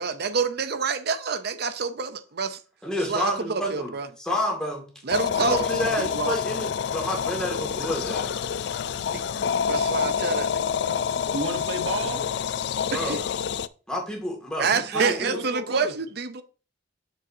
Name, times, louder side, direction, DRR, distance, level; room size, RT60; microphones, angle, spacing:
voice 1, 0.0-2.6 3.0-4.1 5.0-6.4 9.1-9.2 9.6-10.9 12.9-13.2 14.6-16.4, right 5 dB, 60° right, 0.6 m, -28 dB
voice 2, 2.8-3.9 4.2-4.9 5.4-8.3 12.9-13.2 13.9-15.4, equal, 5° left, 2.1 m, -29 dB
sound 1, 5.1-13.7, left 7 dB, 65° left, 0.3 m, -27 dB
voice 3, 11.3-12.2 14.9-15.9, right 3 dB, 90° right, 1.2 m, -30 dB
7.8 x 6.7 x 2.7 m
head